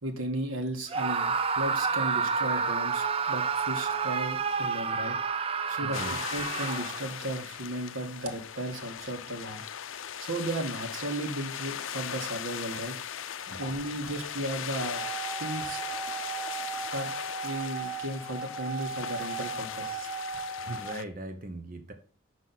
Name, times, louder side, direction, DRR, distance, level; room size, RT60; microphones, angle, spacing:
voice 1, 0.0-5.2 5.7-9.6 10.0-12.9 13.6-15.0 15.4-15.8 16.8-17.1 17.4-20.2, right 1 dB, 90° right, 5 dB, 1.6 m, -35 dB
Screaming, 0.9-7.1, right 5 dB, 30° right, 0.5 m, -29 dB
voice 2, 5.8-6.2 13.5-13.6 20.6-21.9, right 1 dB, 45° right, 7 dB, 0.8 m, -39 dB
sound 1, 5.9-21.0, left 9 dB, 70° left, 0.5 m, -38 dB
sound 2, 14.8-20.9, right 6 dB, 5° right, 3.5 m, -37 dB
6.0 x 5.8 x 4.0 m, 0.41 s
head